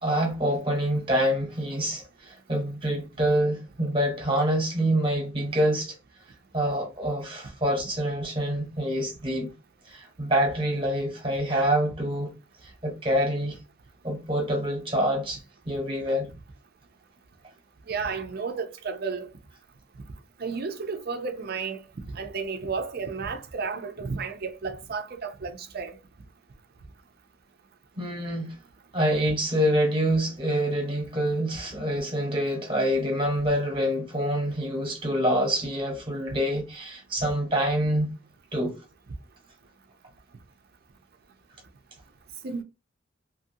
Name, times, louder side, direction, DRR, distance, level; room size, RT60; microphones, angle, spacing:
voice 1, 0.0-6.0 6.5-9.5 9.9-12.3 12.6-13.6 14.0-15.4 15.7-16.3 28.0-28.5 28.9-38.1 38.5-38.8, equal, 25° right, 1.2 m, -26 dB
voice 2, 17.9-19.3 20.4-21.8 22.1-25.9 42.4-42.6, right 5 dB, 50° right, 0.5 m, -32 dB
2.7 x 2.6 x 2.7 m
head